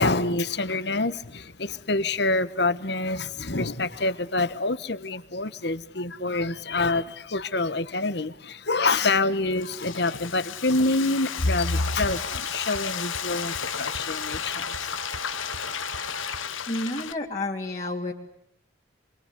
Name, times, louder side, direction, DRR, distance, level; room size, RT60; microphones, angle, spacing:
voice 1, 0.0-14.7 14.9-15.0, left 2 dB, 55° left, 14 dB, 1.4 m, -26 dB
Frying (food), 9.3-17.1, left 8 dB, 90° left, 1.2 m, -33 dB
sound 1, 11.7-16.8, right 4 dB, 85° right, 1.0 m, -41 dB
voice 2, 16.7-18.1, left 2 dB, 35° left, -1 dB, 3.0 m, -30 dB
27.5 x 24.0 x 8.3 m, 0.74 s
head